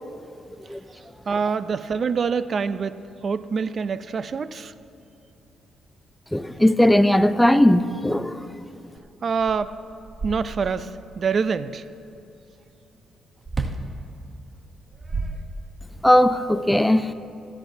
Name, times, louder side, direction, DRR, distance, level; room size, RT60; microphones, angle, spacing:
voice 1, 1.3-3.0 3.2-4.7 9.2-9.8 10.2-11.8, right 5 dB, 45° right, 13 dB, 0.5 m, -25 dB
voice 2, 6.3-8.4 16.0-17.1, left 1 dB, 5° left, 11 dB, 0.5 m, -18 dB
sound 1, 9.0-9.1 9.4-10.9 13.4-13.9 14.7-16.0, right 3 dB, 25° right, 0.9 m, -31 dB
25.5 x 10.5 x 2.7 m, 2.8 s
cardioid pair, 90°, 0 cm